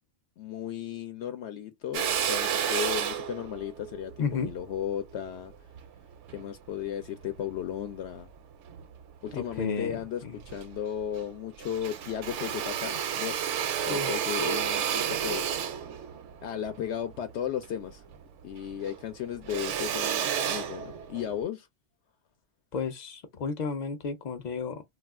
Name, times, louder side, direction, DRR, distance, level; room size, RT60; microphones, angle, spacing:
voice 1, 0.4-5.5 6.3-8.3 9.2-13.4 13.9-15.4 16.4-18.0 18.4-21.7, left 10 dB, 75° left, 0.8 m, -35 dB
Drill, 1.9-6.5 7.0-8.2 8.7-9.6 10.0-10.1 10.3-11.3 11.6-18.3 18.6-21.4, right 8 dB, 80° right, 0.9 m, -32 dB
voice 2, 4.2-4.5 9.3-10.4 13.8-14.2 22.7-24.8, left 5 dB, 55° left, 0.5 m, -33 dB
2.4 x 2.3 x 3.4 m
omnidirectional pair, 1.2 m